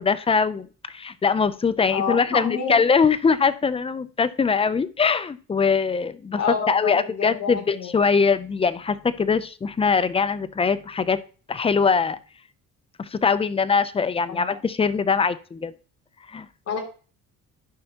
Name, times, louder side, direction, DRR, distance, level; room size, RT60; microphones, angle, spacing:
voice 1, 0.0-6.4 6.7-11.2 11.5-12.2 13.0-15.7 16.3-16.5, left 5 dB, 15° left, 13 dB, 0.5 m, -22 dB
voice 2, 1.9-2.8 6.4-7.9 14.3-14.6 16.7-16.8, left 5 dB, 50° left, 0 dB, 2.9 m, -28 dB
13.0 x 5.5 x 2.9 m, 0.38 s
cardioid pair, 115°, 33 cm